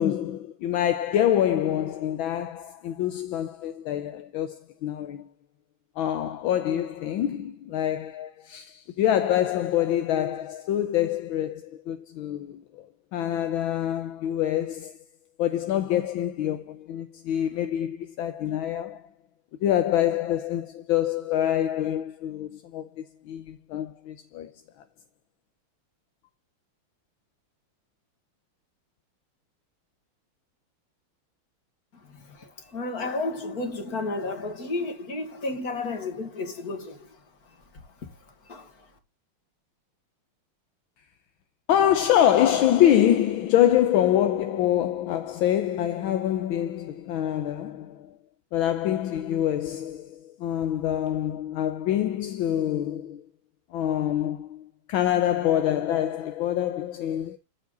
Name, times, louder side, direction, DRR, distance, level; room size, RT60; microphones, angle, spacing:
voice 1, 0.0-5.3 6.0-12.9 13.1-15.0 15.4-19.0 19.6-24.5 41.7-48.2 48.5-53.2 53.7-57.4, left 11 dB, 70° left, 1.5 m, -25 dB
voice 2, 31.9-38.9, left 2 dB, 45° left, 2.6 m, -33 dB
14.5 x 4.8 x 4.0 m
omnidirectional pair, 2.4 m